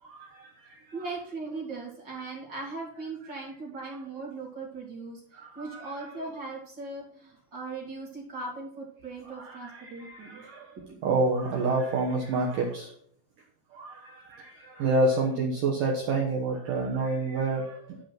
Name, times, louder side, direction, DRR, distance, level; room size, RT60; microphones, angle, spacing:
voice 1, 0.0-0.8 5.3-6.2 9.3-12.9 13.7-18.0, right 3 dB, 85° right, -1 dB, 1.8 m, -29 dB
voice 2, 0.9-5.2 5.5-10.4 10.8-11.0, right 3 dB, 30° right, -4 dB, 2.3 m, -39 dB
12.0 x 5.4 x 5.8 m, 0.66 s
omnidirectional pair, 5.8 m